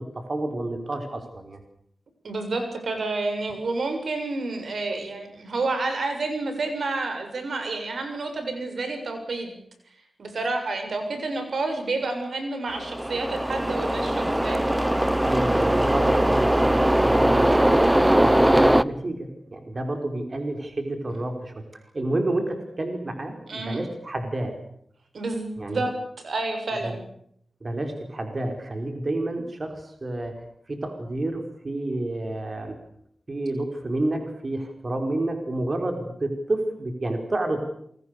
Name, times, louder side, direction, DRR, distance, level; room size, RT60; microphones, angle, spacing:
voice 1, 0.0-1.6 15.2-21.5 21.9-24.5 25.6-25.8 26.8-26.9 27.6-30.3 30.7-32.8 33.3-37.6, right 2 dB, 45° right, 5 dB, 5.3 m, -29 dB
voice 2, 2.2-9.6 10.2-14.6 23.5-23.8 25.1-27.0, right 3 dB, 75° right, 6 dB, 7.0 m, -29 dB
sound 1, 12.7-18.8, right 1 dB, 10° right, 1.1 m, -20 dB
28.0 x 23.5 x 6.9 m, 0.69 s
cardioid pair, 65°, 0 cm